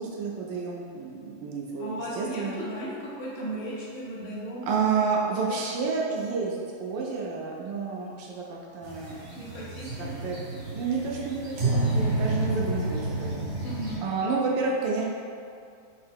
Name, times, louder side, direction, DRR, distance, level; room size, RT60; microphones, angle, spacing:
voice 1, 0.0-2.5 4.7-9.4 10.0-13.5 14.0-15.0, right 4 dB, 75° right, -2 dB, 1.2 m, -30 dB
voice 2, 1.8-5.7 9.4-10.1 13.6-14.0, right 1 dB, 80° left, -6 dB, 1.7 m, -36 dB
sound 1, 8.8-14.0, right 2 dB, 55° right, 0.8 m, -30 dB
4.4 x 2.8 x 3.5 m, 2.4 s
omnidirectional pair, 2.2 m